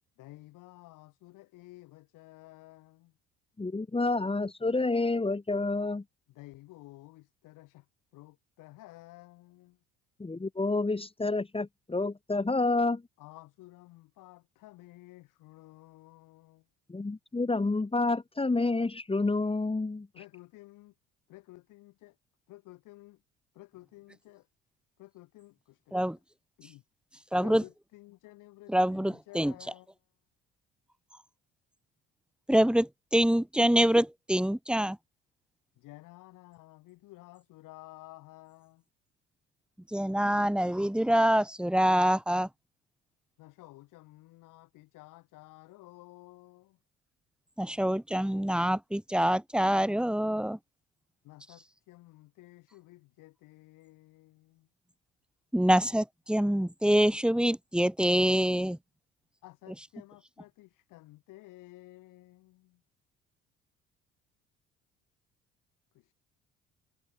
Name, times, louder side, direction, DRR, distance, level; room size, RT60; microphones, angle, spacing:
voice 1, 0.2-3.2 6.3-7.9 8.1-9.8 13.2-16.7 20.1-20.9 21.3-22.2 22.5-23.2 23.5-24.5 25.0-26.1 26.6-26.8 27.4-29.9 35.7-38.8 43.4-46.8 51.2-54.7 59.4-62.8 65.9-66.1, left 19 dB, 70° left, 4.4 m, -53 dB
voice 2, 3.6-6.0 10.2-13.0 16.9-20.1, left 3 dB, 15° left, 2.0 m, -29 dB
voice 3, 27.3-27.6 28.7-29.5 32.5-35.0 39.9-42.5 47.6-50.6 55.5-58.8, equal, 5° right, 1.8 m, -25 dB
hypercardioid pair, 55°, 33 cm